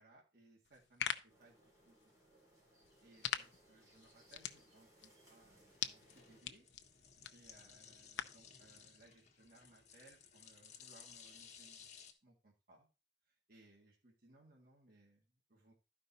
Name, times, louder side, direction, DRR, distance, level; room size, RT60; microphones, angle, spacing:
voice 1, 0.0-2.0 2.7-6.7 6.9-11.9 12.2-12.9 13.3-15.7, right 2 dB, 55° right, -2 dB, 1.9 m, -66 dB
sound 1, 0.7-8.5, left 9 dB, 80° left, 0.6 m, -46 dB
sound 2, 1.3-6.4, right 1 dB, 20° right, 3.5 m, -67 dB
sound 3, 3.2-12.1, left 7 dB, 40° left, 1.3 m, -60 dB
12.0 x 5.3 x 4.1 m, 0.32 s
head